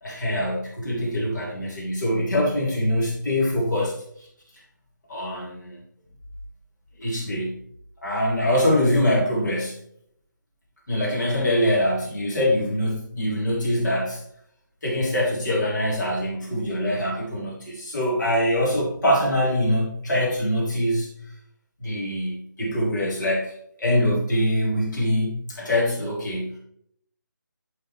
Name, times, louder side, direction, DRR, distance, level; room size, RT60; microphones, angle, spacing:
voice 1, 0.0-4.0 5.1-5.8 7.0-7.6 8.0-9.8 10.9-14.2 14.8-21.2 21.8-23.5 23.8-26.6, left 1 dB, 65° left, -4 dB, 3.3 m, -24 dB
9.1 x 6.8 x 3.3 m, 0.67 s
figure-of-eight pair, 155°, 11 cm